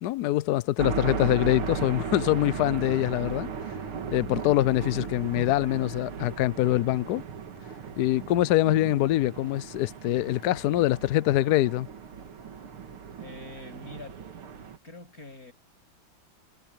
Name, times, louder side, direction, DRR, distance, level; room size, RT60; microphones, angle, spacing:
voice 1, 0.0-3.5 4.1-7.2 8.0-11.9, left 15 dB, 90° left, 0.8 m, -24 dB
sound 1, 0.8-14.8, right 6 dB, 75° right, 2.5 m, -36 dB
voice 2, 13.2-14.2 14.8-15.5, left 2 dB, 40° left, 8.7 m, -44 dB
omnidirectional pair, 2.4 m